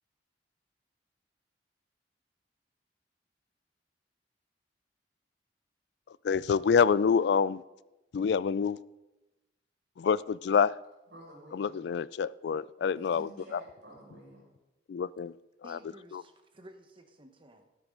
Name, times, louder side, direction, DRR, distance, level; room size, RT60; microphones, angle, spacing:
voice 1, 6.2-7.6 8.1-8.8 10.0-10.7 11.5-13.6 14.9-15.3 15.7-15.8 16.1-16.2, left 6 dB, 70° left, 0.3 m, -27 dB
voice 2, 11.1-11.8 13.0-14.5, right 1 dB, 85° right, 5.6 m, -50 dB
voice 3, 15.6-17.7, right 1 dB, 30° right, 1.1 m, -53 dB
13.5 x 12.0 x 3.8 m
head